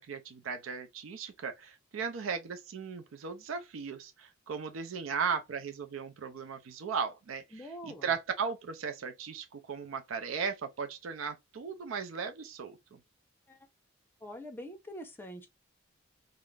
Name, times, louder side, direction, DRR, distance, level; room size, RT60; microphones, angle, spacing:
voice 1, 0.0-13.0, right 6 dB, 85° right, 0.4 m, -37 dB
voice 2, 7.5-8.1 13.5-13.6 14.2-15.5, equal, 10° left, 0.5 m, -44 dB
2.4 x 2.0 x 3.1 m
head